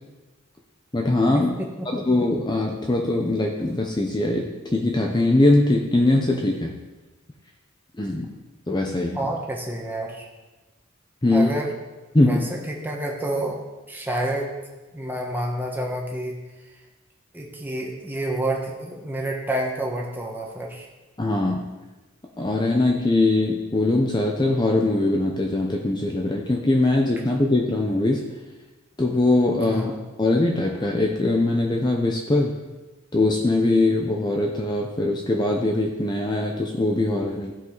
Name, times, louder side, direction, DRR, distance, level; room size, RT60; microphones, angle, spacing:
voice 1, 0.9-1.5 1.9-6.7 8.0-8.3 8.7-9.3 11.2-11.5 12.1-12.4 21.2-21.6 22.4-28.3 29.0-32.6 33.1-37.5, left 2 dB, 20° left, 0 dB, 0.7 m, -21 dB
voice 2, 9.1-10.3 11.3-11.7 12.2-13.6 13.9-14.5 14.9-16.4 17.3-20.9 29.6-30.0, right 1 dB, 10° right, -1 dB, 1.3 m, -28 dB
16.0 x 5.4 x 4.0 m, 1.2 s
head